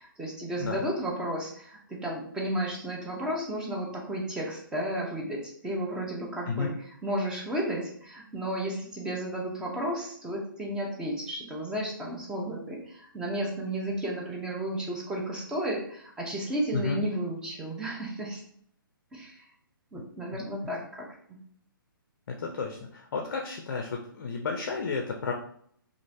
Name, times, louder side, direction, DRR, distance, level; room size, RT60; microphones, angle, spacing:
voice 1, 0.0-6.7 7.0-18.4 19.1-19.3 19.9-21.1, right 1 dB, 5° right, -2 dB, 0.5 m, -33 dB
voice 2, 22.3-25.3, left 4 dB, 50° left, 1 dB, 0.4 m, -32 dB
3.0 x 2.4 x 2.5 m, 0.63 s
figure-of-eight pair, 135°, 12 cm